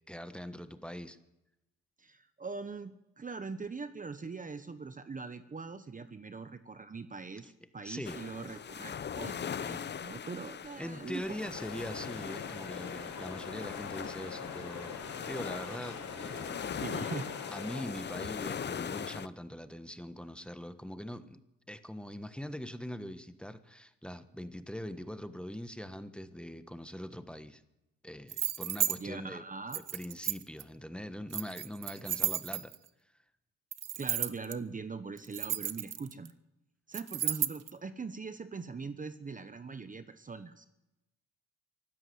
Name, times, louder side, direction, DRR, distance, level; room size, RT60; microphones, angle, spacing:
voice 1, 0.1-1.2 7.8-8.2 10.8-14.9 15.3-16.7 17.5-21.4 21.7-27.6 28.0-29.4 29.7-32.7, equal, 5° left, 10 dB, 1.3 m, -42 dB
voice 2, 2.0-11.5 16.8-17.3 28.9-29.8 32.0-32.3 34.0-36.3 36.9-40.7, right 4 dB, 25° right, 11 dB, 1.1 m, -42 dB
sound 1, 8.0-19.3, left 7 dB, 35° left, 0.7 m, -40 dB
sound 2, 11.5-17.8, left 5 dB, 65° left, 4.9 m, -44 dB
sound 3, 28.3-29.0 29.7-30.6 31.3-32.9 33.7-34.5 35.2-36.3 36.9-37.7, right 10 dB, 55° right, 1.1 m, -33 dB
24.0 x 14.0 x 7.9 m, 0.95 s
cardioid pair, 90°, 30 cm